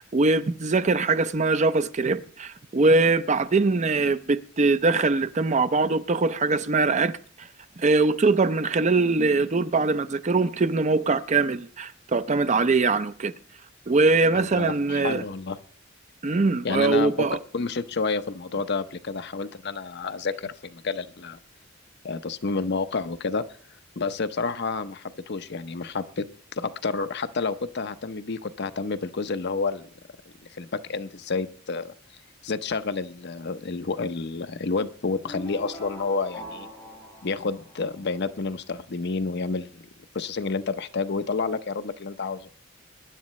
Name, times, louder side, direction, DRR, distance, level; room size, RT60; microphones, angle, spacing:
voice 1, 0.0-7.1 7.4-7.5 7.8-13.3 13.9-15.2 16.2-17.4, right 3 dB, 35° right, 0.5 m, -22 dB
voice 2, 14.3-15.6 16.6-17.3 17.5-21.4 22.0-23.4 24.0-26.3 26.5-29.9 30.5-31.9 32.4-36.7 37.2-39.9 40.1-42.5, left 4 dB, 55° left, 0.7 m, -29 dB
sound 1, 35.2-38.3, equal, 10° left, 5.4 m, -41 dB
22.5 x 10.5 x 3.1 m
head